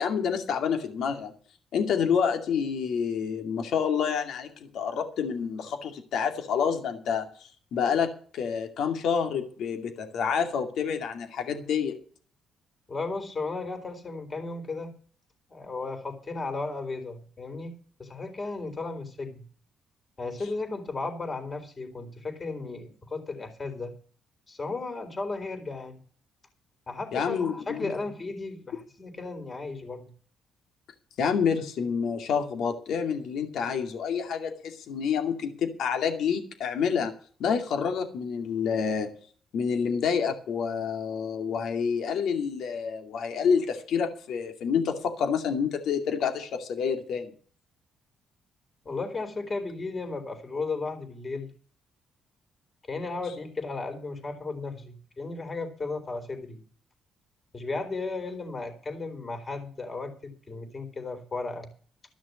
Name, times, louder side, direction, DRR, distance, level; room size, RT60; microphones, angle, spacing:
voice 1, 0.0-1.3 1.7-12.0 27.1-27.9 31.2-37.1 37.4-39.1 39.5-47.3, left 6 dB, 75° left, 5 dB, 2.5 m, -28 dB
voice 2, 12.9-14.9 15.5-17.7 18.0-19.4 20.2-24.0 24.5-26.0 26.9-30.1 48.9-51.5 52.9-56.6 57.5-61.7, left 3 dB, 30° left, 5 dB, 3.9 m, -35 dB
14.0 x 6.4 x 8.4 m, 0.43 s
cardioid pair, 90°, 0 cm